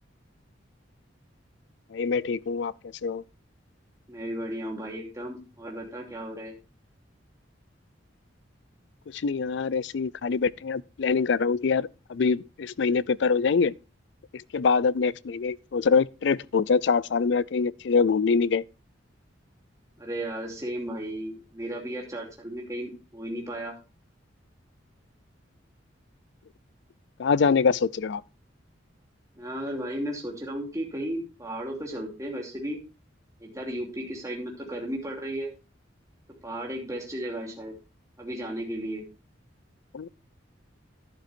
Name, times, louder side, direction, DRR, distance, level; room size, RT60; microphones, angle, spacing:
voice 1, 1.9-2.7 3.0-3.2 9.1-13.7 14.3-18.6 27.2-28.2 39.9-40.1, left 5 dB, 65° left, 0.4 m, -24 dB
voice 2, 4.1-6.5 20.0-23.8 29.3-32.8 33.4-35.5 36.4-37.7 38.2-39.0, right 1 dB, 15° right, 2.8 m, -34 dB
11.5 x 11.0 x 2.6 m
head